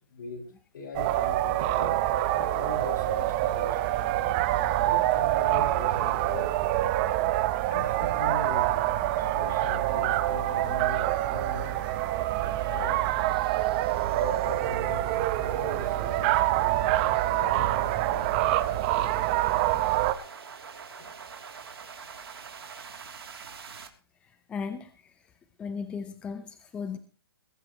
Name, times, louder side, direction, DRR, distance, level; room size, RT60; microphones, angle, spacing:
voice 1, 0.1-0.4 0.7-1.9 2.3-6.5 7.7-8.8 9.1-11.8 12.7-13.0 14.1-20.1, left 3 dB, 55° left, 1 dB, 6.4 m, -41 dB
sound 1, 0.9-20.1, right 15 dB, 25° right, 0.9 m, -26 dB
sound 2, 9.1-23.9, right 6 dB, 80° right, 3.0 m, -46 dB
voice 2, 24.2-25.3 25.6-27.0, left 5 dB, 10° left, 9 dB, 0.7 m, -37 dB
21.0 x 12.0 x 3.1 m, 0.36 s
hypercardioid pair, 160°, 13 cm